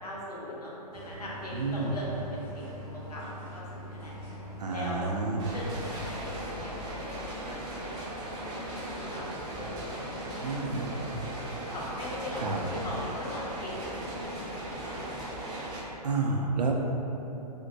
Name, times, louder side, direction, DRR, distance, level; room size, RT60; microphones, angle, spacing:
voice 1, 0.0-4.2 4.7-5.1 5.5-7.2 7.6-8.0 8.2-8.6 9.0-10.2 11.7-14.0 14.4-14.9, left 1 dB, 70° left, -4 dB, 0.9 m, -40 dB
sound 1, 0.9-6.1, equal, 35° left, 1.0 m, -43 dB
voice 2, 1.5-1.9 4.6-5.5 10.4-11.2 12.4-12.6 16.0-16.7, right 3 dB, 75° right, 1 dB, 0.5 m, -30 dB
sound 2, 5.4-15.8, right 1 dB, 20° right, 0.6 m, -37 dB
4.3 x 2.2 x 2.6 m, 3.0 s
figure-of-eight pair, 125°, 21 cm